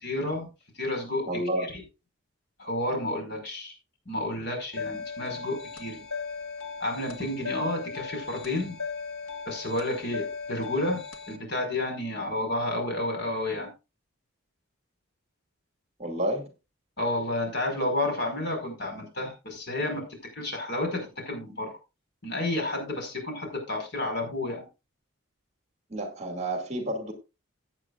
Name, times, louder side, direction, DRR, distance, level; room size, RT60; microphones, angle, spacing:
voice 1, 0.0-0.5 0.8-1.2 1.6-1.8 2.6-3.7 4.1-6.0 6.8-8.8 9.5-11.0 11.3-13.7 17.0-21.7 22.2-24.6, left 1 dB, 50° left, 5.1 m, -31 dB
voice 2, 1.3-1.7 16.0-16.5 25.9-27.1, right 1 dB, 30° right, 2.4 m, -30 dB
sound 1, 4.7-11.4, left 5 dB, 85° left, 1.7 m, -37 dB
16.0 x 8.9 x 2.5 m
head